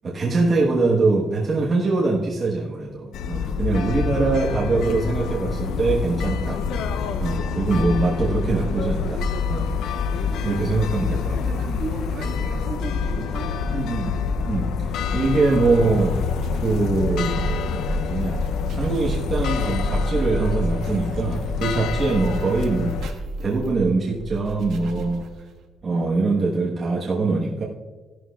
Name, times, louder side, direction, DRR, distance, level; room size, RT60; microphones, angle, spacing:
voice 1, 0.0-6.6 7.2-9.7 10.4-11.6 13.7-14.2 14.5-16.2 16.6-18.4 18.8-22.9 23.4-25.2 25.8-27.6, right 3 dB, 35° right, -5 dB, 1.3 m, -23 dB
sound 1, 3.1-23.1, left 5 dB, 75° left, 0.6 m, -26 dB
voice 2, 3.7-4.2 7.8-8.2 10.3-10.7 11.0-14.1, right 4 dB, 55° right, 1 dB, 1.7 m, -37 dB
sound 2, 15.7-25.7, right 1 dB, 75° right, 1.3 m, -32 dB
14.0 x 11.5 x 2.4 m, 1.4 s
cardioid pair, 160°, 0 cm